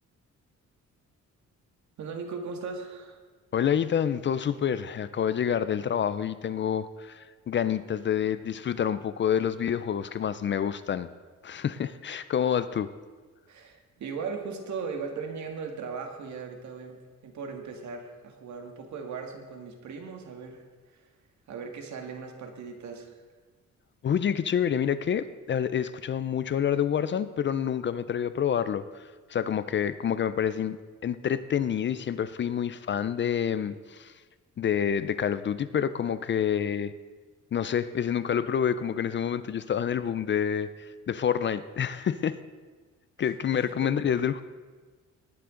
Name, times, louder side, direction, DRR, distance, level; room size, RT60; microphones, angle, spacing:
voice 1, 2.0-3.2 13.5-21.1 21.5-23.2 43.5-44.3, right 5 dB, 70° right, 4 dB, 1.9 m, -38 dB
voice 2, 3.5-11.1 11.4-12.9 24.0-34.1 34.6-36.9 37.5-40.7 41.1-42.4 43.2-44.4, left 8 dB, 40° left, 14 dB, 0.5 m, -28 dB
19.5 x 9.5 x 3.8 m, 1.4 s
cardioid pair, 135°, 30 cm